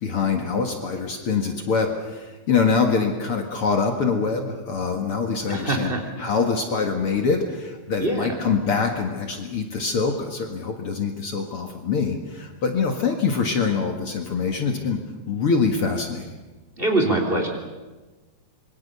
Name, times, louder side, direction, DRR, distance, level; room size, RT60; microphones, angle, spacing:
voice 1, 0.0-5.9 6.2-15.0 15.3-16.3, left 5 dB, 50° left, 3 dB, 2.5 m, -24 dB
voice 2, 5.5-6.1 8.0-8.4 16.8-17.5, right 2 dB, 20° right, 3 dB, 3.5 m, -23 dB
26.5 x 23.0 x 6.9 m, 1.2 s
omnidirectional pair, 3.3 m